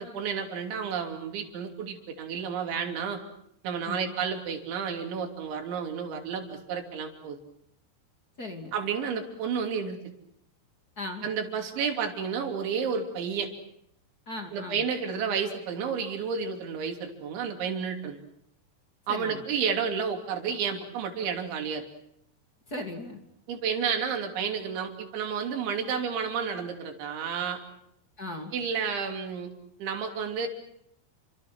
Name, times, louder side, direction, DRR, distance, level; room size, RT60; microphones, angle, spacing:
voice 1, 0.0-3.2 3.6-7.4 8.7-10.0 11.2-13.5 14.5-18.2 19.1-21.8 23.5-27.6 28.5-29.5 29.8-30.5, right 6 dB, 85° right, 4 dB, 5.4 m, -31 dB
voice 2, 8.4-8.7 11.0-11.3 14.3-14.8 19.1-19.4 22.7-23.2 28.2-28.5, left 2 dB, 25° left, 4 dB, 2.5 m, -37 dB
30.0 x 25.5 x 6.3 m, 0.75 s
omnidirectional pair, 5.2 m